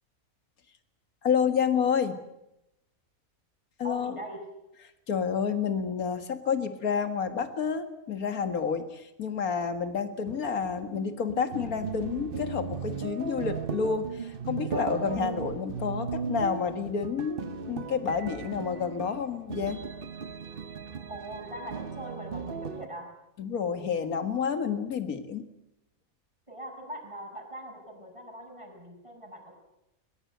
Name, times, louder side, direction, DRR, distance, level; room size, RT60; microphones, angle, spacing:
voice 1, 1.2-2.2 3.8-4.1 5.1-17.4 17.7-19.8 23.4-25.5, left 6 dB, 85° left, 8 dB, 2.1 m, -29 dB
voice 2, 3.8-4.4 21.1-23.1 23.6-23.9 26.5-29.5, right 1 dB, 20° right, 2 dB, 6.0 m, -42 dB
sound 1, 10.3-22.9, right 5 dB, 45° right, 1.0 m, -37 dB
21.5 x 21.0 x 8.1 m, 0.89 s
omnidirectional pair, 1.5 m